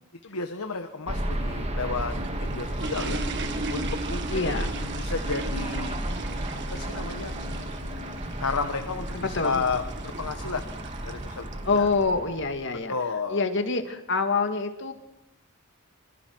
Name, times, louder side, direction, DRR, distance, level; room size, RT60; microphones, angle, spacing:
voice 1, 0.2-2.1 2.4-3.2 3.7-4.5 5.0-5.9 6.7-7.3 8.4-10.6 11.0-11.9 12.9-13.4, left 4 dB, 85° left, 6 dB, 1.4 m, -32 dB
sound 1, 1.1-12.6, right 1 dB, 30° right, 2.1 m, -33 dB
sound 2, 1.9-12.0, right 3 dB, 55° right, 1.7 m, -39 dB
voice 2, 4.3-4.7 9.1-9.6 11.6-12.9 13.3-14.9, left 4 dB, 55° left, 6 dB, 2.0 m, -26 dB
26.0 x 26.0 x 4.7 m, 0.87 s
head